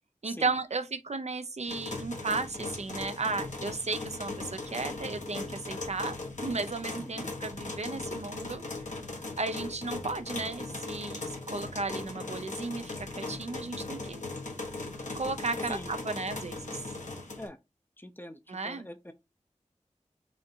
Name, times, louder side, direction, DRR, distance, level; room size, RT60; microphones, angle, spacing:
voice 1, 0.2-6.2 6.4-8.6 9.4-14.2 15.1-16.8 18.5-18.9, right 3 dB, 60° right, 0.5 m, -34 dB
sound 1, 1.7-17.5, left 2 dB, 75° left, 1.0 m, -38 dB
voice 2, 7.0-7.3 15.6-15.9 17.4-17.6 18.0-19.1, left 1 dB, 15° left, 0.5 m, -44 dB
4.9 x 2.6 x 2.7 m
wide cardioid pair, 40°, 13 cm